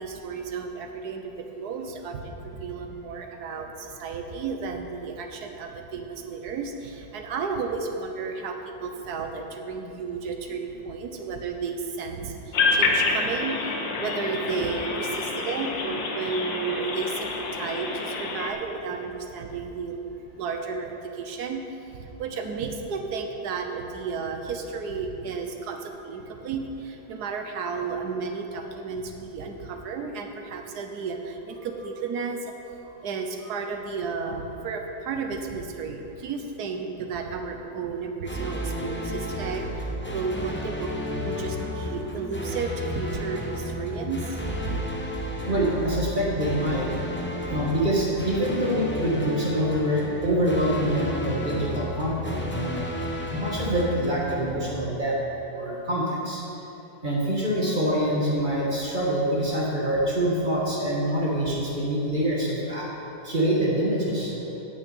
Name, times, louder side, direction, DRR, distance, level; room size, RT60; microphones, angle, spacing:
voice 1, 0.0-20.1 20.4-32.5 33.0-45.3 47.4-47.5, right 5 dB, 65° right, 4 dB, 1.4 m, -33 dB
sound 1, 12.5-18.5, left 3 dB, 80° left, 1.8 m, -27 dB
sound 2, 38.2-55.3, left 1 dB, 10° left, 0.5 m, -33 dB
voice 2, 45.5-46.9 47.5-52.9 53.3-55.2 55.5-56.4 57.0-62.9 63.2-64.3, right 1 dB, 25° right, -4 dB, 1.9 m, -25 dB
9.2 x 6.5 x 8.4 m, 3.0 s
omnidirectional pair, 2.0 m